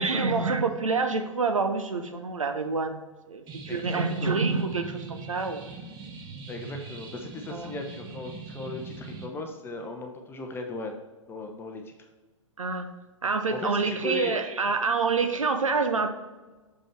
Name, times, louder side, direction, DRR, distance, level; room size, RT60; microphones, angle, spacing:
voice 1, 0.0-3.0 3.3-5.6 7.5-7.7 12.6-12.9 13.2-16.1, right 4 dB, 75° right, 7 dB, 0.8 m, -27 dB
sound 1, 3.5-9.3, right 4 dB, 25° right, 1.1 m, -42 dB
voice 2, 3.7-4.5 6.5-10.9 11.3-11.9 13.5-14.4, left 2 dB, 15° left, 4 dB, 0.8 m, -37 dB
7.0 x 5.2 x 4.5 m, 1.2 s
figure-of-eight pair, 110°, 17 cm